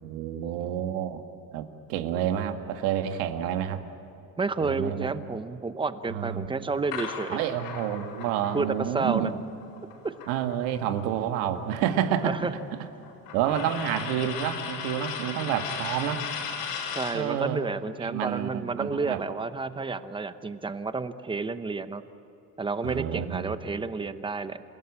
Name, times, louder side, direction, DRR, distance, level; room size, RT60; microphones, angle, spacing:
voice 1, 0.0-1.2 1.5-3.8 4.6-5.1 6.1-6.5 7.3-9.4 10.3-12.3 13.3-16.2 17.1-17.6 18.0-19.2 22.8-23.6, right 10 dB, 90° right, 6 dB, 2.0 m, -29 dB
voice 2, 4.4-7.4 8.5-8.7 8.9-9.3 10.0-10.1 12.2-12.5 16.9-22.0 22.6-24.6, right 4 dB, 15° right, 11 dB, 0.8 m, -30 dB
sound 1, 6.9-11.0 11.3-17.3, left 6 dB, 70° left, 5.8 m, -37 dB
28.5 x 16.5 x 8.7 m, 2.9 s
cardioid pair, 135°, 39 cm